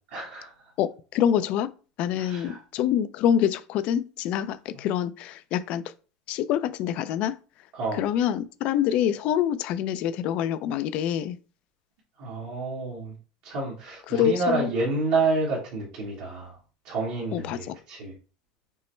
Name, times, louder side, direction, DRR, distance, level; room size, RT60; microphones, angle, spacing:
voice 1, 0.1-0.5 2.2-2.6 7.7-8.1 12.2-13.1 13.4-16.6 16.8-18.1, right 3 dB, 70° right, 1.5 m, -29 dB
voice 2, 0.8-1.7 2.0-5.8 6.3-7.4 7.9-11.4 14.1-14.7 17.3-17.8, left 9 dB, 55° left, 0.4 m, -26 dB
5.3 x 2.1 x 3.2 m
supercardioid pair, 125°, 3 cm